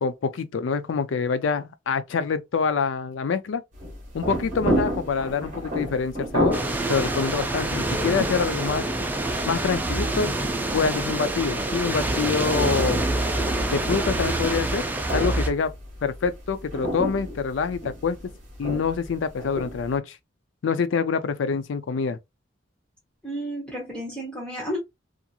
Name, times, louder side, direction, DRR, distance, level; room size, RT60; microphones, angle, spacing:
voice 1, 0.0-3.6 4.1-6.6 6.9-8.8 9.4-10.3 10.7-13.0 13.7-14.8 15.1-15.7 16.0-18.3 18.6-20.2 20.6-22.2, left 5 dB, 80° left, 0.4 m, -26 dB
sound 1, 3.7-20.0, equal, 40° right, 1.1 m, -32 dB
sound 2, 6.5-15.5, right 2 dB, 10° right, 0.4 m, -26 dB
voice 2, 23.2-24.8, equal, 5° left, 0.8 m, -32 dB
2.8 x 2.5 x 2.3 m
head